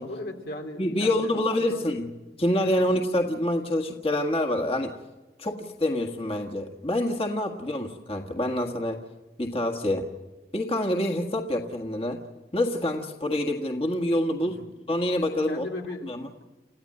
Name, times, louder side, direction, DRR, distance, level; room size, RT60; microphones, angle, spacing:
voice 1, 0.0-1.8 2.8-3.0 7.5-7.8 14.4-14.7 15.5-16.1, left 1 dB, 75° left, 2 dB, 3.5 m, -38 dB
voice 2, 0.8-2.1 2.4-4.9 5.4-9.0 9.4-10.1 10.5-12.2 12.5-14.6 14.9-15.7 16.0-16.2, left 1 dB, 35° left, 2 dB, 1.7 m, -26 dB
30.0 x 15.0 x 7.8 m, 1.1 s
head